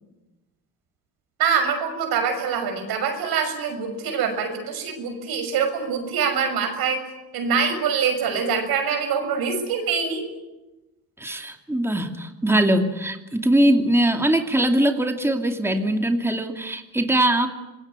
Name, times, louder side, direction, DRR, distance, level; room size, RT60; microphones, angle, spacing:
voice 1, 1.4-7.1 7.3-10.2, right 6 dB, 80° right, 7 dB, 6.5 m, -24 dB
voice 2, 11.2-17.5, right 1 dB, 5° right, 4 dB, 2.6 m, -21 dB
27.0 x 21.0 x 9.7 m, 1.0 s
cardioid pair, 100°, 36 cm